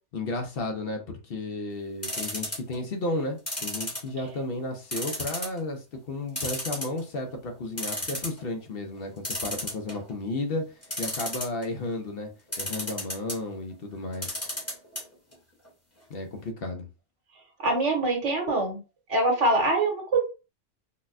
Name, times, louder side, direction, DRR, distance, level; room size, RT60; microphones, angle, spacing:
voice 1, 0.1-10.6 11.0-12.3 12.6-14.4 16.1-16.9, left 2 dB, 55° left, 3 dB, 0.9 m, -33 dB
sound 1, 2.0-2.8 3.5-4.4 4.9-5.6 5.9-6.0 6.4-7.2 7.5-7.6 7.8-8.4 9.2-10.1 10.8-11.7 12.5-13.4 14.1-15.0 15.3-15.4 15.7-15.8, left 1 dB, 15° left, 1.1 m, -32 dB
voice 2, 17.6-18.8 19.1-20.2, right 2 dB, 80° right, 2 dB, 1.4 m, -24 dB
4.0 x 2.2 x 2.5 m, 0.31 s
omnidirectional pair, 1.2 m